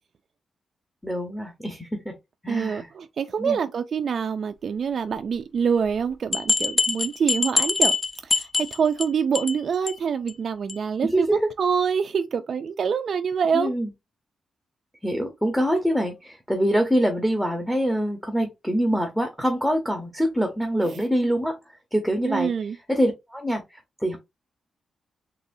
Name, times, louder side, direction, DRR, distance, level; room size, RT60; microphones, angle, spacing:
voice 1, 1.0-2.1 2.4-2.9 3.4-3.6 11.0-11.5 13.5-13.9 15.0-21.6 21.9-22.5 22.9-24.2, equal, ahead, 0.9 m, -25 dB
voice 2, 2.5-8.0 8.2-13.7 20.8-21.0 22.2-22.8, right 6 dB, 55° right, 0.3 m, -26 dB
sound 1, 5.9-6.0 6.3-9.1 9.3-9.6 9.9-10.0 10.3-10.4 10.7-10.8, left 3 dB, 30° left, 0.5 m, -23 dB
4.0 x 3.1 x 2.6 m
wide cardioid pair, 130°, 0 cm